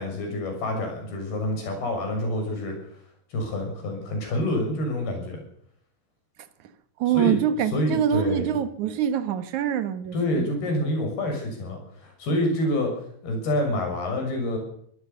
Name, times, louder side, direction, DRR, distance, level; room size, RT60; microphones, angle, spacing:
voice 1, 0.0-2.8 3.3-5.4 7.1-8.5 10.1-12.9 13.2-14.6, left 1 dB, 65° left, 8.4 m, -27 dB
voice 2, 7.0-10.5, right 9 dB, 60° right, 2.3 m, -25 dB
24.0 x 17.5 x 6.9 m
omnidirectional pair, 4.8 m